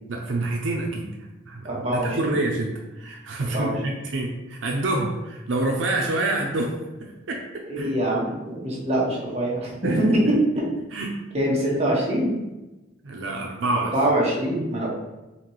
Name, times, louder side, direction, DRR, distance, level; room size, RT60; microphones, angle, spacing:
voice 1, 0.1-1.1 1.5-6.7 7.0-7.9 9.8-10.2 10.9-11.2 13.0-13.9, right 2 dB, 85° right, 0 dB, 0.6 m, -27 dB
voice 2, 1.6-2.4 3.5-3.7 7.7-9.7 10.0-10.6 11.3-12.3 13.7-14.9, right 1 dB, 35° right, -5 dB, 1.2 m, -24 dB
4.2 x 3.0 x 3.0 m, 1.0 s
head